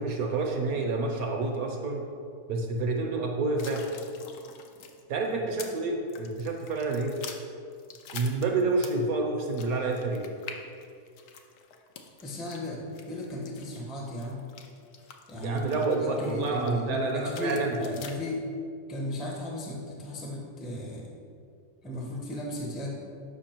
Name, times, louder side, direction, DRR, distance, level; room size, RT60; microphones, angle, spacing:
voice 1, 0.0-2.1 2.5-3.8 5.1-7.1 8.1-10.2 15.4-17.8, right 3 dB, 60° right, 2 dB, 1.1 m, -28 dB
sound 1, 3.6-5.8 6.1-9.1 9.4-16.7 17.1-18.1, left 7 dB, 70° left, 1.2 m, -46 dB
voice 2, 12.2-14.4 15.3-18.4 18.9-21.1 21.8-23.0, left 1 dB, ahead, -2 dB, 0.5 m, -35 dB
7.1 x 5.5 x 4.4 m, 2.4 s
omnidirectional pair, 2.0 m